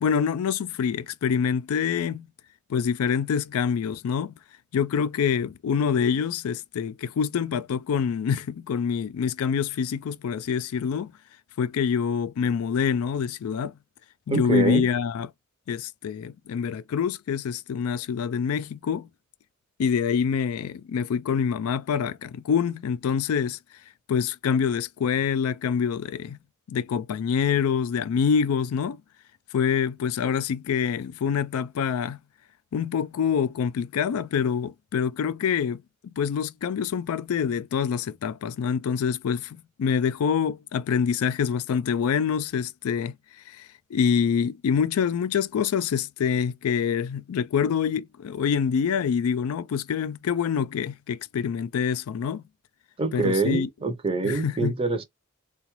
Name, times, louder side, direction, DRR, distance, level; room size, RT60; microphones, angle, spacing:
voice 1, 0.0-2.3 2.7-4.3 4.7-11.1 11.6-13.7 14.3-15.3 15.7-19.1 19.8-23.6 24.1-26.4 26.7-29.0 29.5-32.2 32.7-35.8 36.1-43.2 43.5-52.4 53.1-53.7 54.2-54.7, left 7 dB, 85° left, 0.3 m, -26 dB
voice 2, 14.3-14.9 53.0-55.0, right 3 dB, 25° right, 0.5 m, -25 dB
3.8 x 2.2 x 3.0 m
head